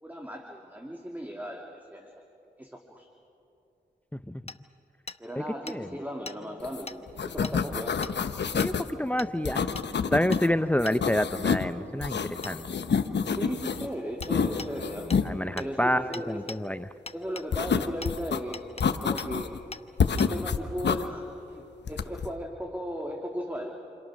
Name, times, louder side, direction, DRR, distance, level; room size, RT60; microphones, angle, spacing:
voice 1, 0.0-2.1 2.6-3.1 5.2-8.1 13.3-15.2 15.5-16.7 17.1-19.6 20.1-23.7, equal, 10° right, 2 dB, 2.6 m, -37 dB
Hammer, 4.5-4.6 5.1-5.2 5.7-5.8 6.3-6.4 6.9-7.0 7.4-7.6 8.0-8.2 8.6-8.7 9.2-9.3 9.8-9.9 10.3-10.4 10.9-11.0 12.4-12.6 14.2-14.3 14.6-14.7 15.1-15.2 15.6-15.7 16.1-16.6 17.1-17.5 18.0-18.1 18.5-18.9 19.2-19.3 19.7-19.8 20.2-20.3, left 3 dB, 35° left, 1.0 m, -40 dB
sound 1, 5.4-15.7, right 1 dB, 50° right, 4.4 m, -49 dB
sound 2, 6.6-6.8 7.1-8.9 9.5-10.5 10.8-11.7 12.0-13.9 14.2-15.3 17.5-18.4 18.8-19.6 20.0-21.0 21.9-22.3, left 6 dB, 75° left, 1.0 m, -28 dB
voice 2, 9.0-9.7 10.1-12.2 12.4-12.6 15.2-16.8, left 1 dB, 10° left, 12 dB, 0.6 m, -27 dB
28.0 x 25.5 x 6.3 m, 2.8 s
cardioid pair, 40°, 18 cm